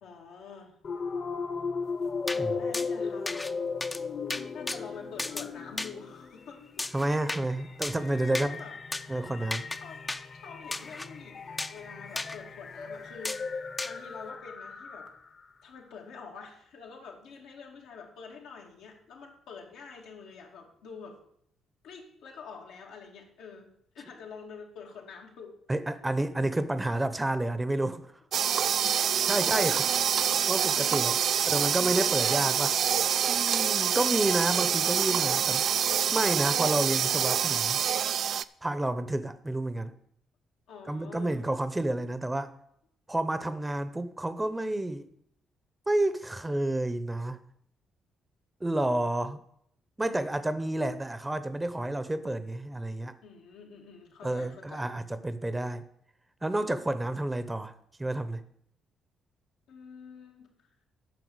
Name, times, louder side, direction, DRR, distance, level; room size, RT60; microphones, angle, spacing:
voice 1, 0.0-0.8 2.3-3.6 4.5-6.9 8.3-8.8 9.8-10.0 10.3-15.1 15.6-21.2 21.8-25.8 29.1-29.5 31.4-31.6 32.0-32.5 40.7-41.4 53.2-54.9 59.7-60.5, left 5 dB, 90° left, 2.3 m, -47 dB
sound 1, 0.8-15.4, left 5 dB, 50° left, 1.2 m, -37 dB
sound 2, 2.3-2.4 2.7-2.9 3.3-3.5 3.8-4.0 4.3-4.8 5.2-5.5 5.8-5.9 6.8-7.4 7.8-8.0 8.3-8.5 8.9-9.0 9.5-9.8 10.1-10.2 10.7-11.1 11.6-11.8 12.2-12.4 13.2-13.4 13.8-13.9, left 2 dB, 20° left, 0.6 m, -34 dB
voice 2, 6.9-8.6 9.1-9.6 25.7-28.1 29.2-29.8 30.5-31.2 31.5-32.7 33.3-35.6 36.1-37.8 38.6-39.9 40.9-42.5 43.1-45.1 45.9-47.4 48.6-49.4 50.0-53.1 54.2-55.8 56.4-57.7 58.0-58.4, right 1 dB, 15° right, 0.8 m, -30 dB
sound 3, 28.3-38.4, right 8 dB, 65° right, 0.3 m, -26 dB
9.3 x 5.7 x 7.9 m
cardioid pair, 90°, 0 cm